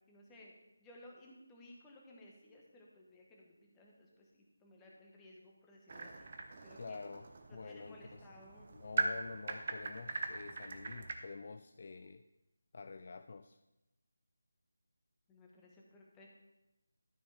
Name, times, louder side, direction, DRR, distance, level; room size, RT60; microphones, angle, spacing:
voice 1, 0.1-0.5 0.8-6.3 6.6-7.0 7.5-8.7 15.3-16.5, left 1 dB, 10° left, -2 dB, 1.3 m, -58 dB
sound 1, 5.9-11.2, right 3 dB, 40° right, 0.8 m, -41 dB
voice 2, 6.8-8.2 8.7-12.2 12.7-13.6, left 4 dB, 40° left, 9 dB, 0.3 m, -48 dB
12.5 x 6.7 x 3.5 m, 0.99 s
figure-of-eight pair, 160°, 0 cm